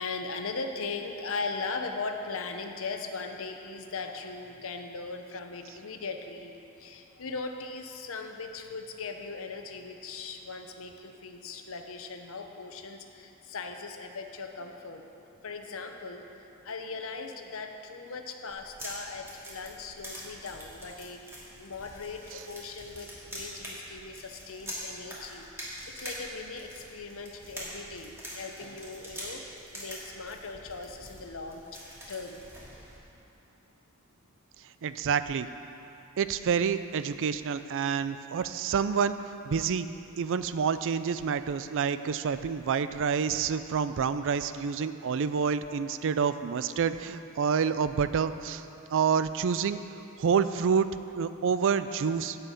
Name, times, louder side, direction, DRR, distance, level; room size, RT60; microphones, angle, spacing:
voice 1, 0.0-15.0 15.4-16.2 16.6-21.2 21.6-25.4 25.9-29.4 29.7-31.6 32.1-32.4, left 4 dB, 65° left, 5 dB, 0.9 m, -39 dB
sound 1, 18.5-33.0, equal, 10° right, 2.3 m, -44 dB
voice 2, 34.8-35.5 36.2-39.2 39.4-39.9 40.2-48.6 48.9-49.8 50.2-50.9 51.2-52.4, right 6 dB, 60° right, 12 dB, 0.4 m, -28 dB
11.0 x 5.7 x 8.2 m, 2.8 s
head